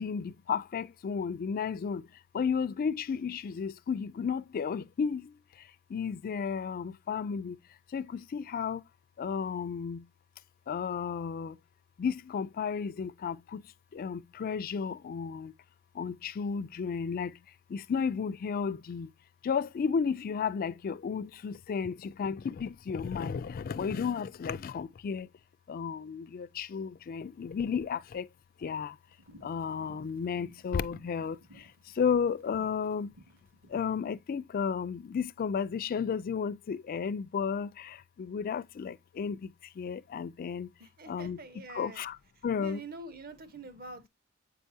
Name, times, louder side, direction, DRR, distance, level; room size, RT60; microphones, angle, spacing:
voice 1, 0.0-2.0 2.3-5.2 5.9-7.6 7.9-8.8 9.2-10.0 10.7-11.6 12.0-13.6 13.9-15.5 16.0-17.3 17.7-19.1 19.4-25.3 25.7-28.3 28.6-28.9 29.4-31.4 32.0-33.1 33.7-39.5 39.8-40.7 41.1-41.4 41.7-42.2 42.4-42.8, left 6 dB, 40° left, 0.3 m, -33 dB
sound 1, 29.1-33.9, equal, 60° right, 2.2 m, -58 dB
voice 2, 40.8-42.0 42.6-44.1, right 3 dB, 40° right, 0.9 m, -45 dB
8.1 x 4.6 x 2.6 m
head